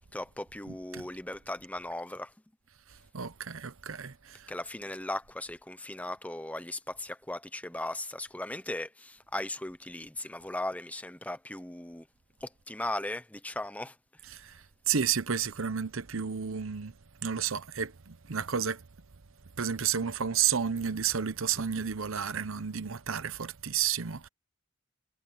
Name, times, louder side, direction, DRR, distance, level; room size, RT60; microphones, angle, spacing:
voice 1, 0.1-2.3 4.5-12.1 12.4-13.9, left 1 dB, 5° left, 1.0 m, -37 dB
voice 2, 0.6-1.1 3.1-4.5 14.2-16.9 17.2-18.8 19.6-24.3, right 7 dB, 75° right, 0.9 m, -31 dB
head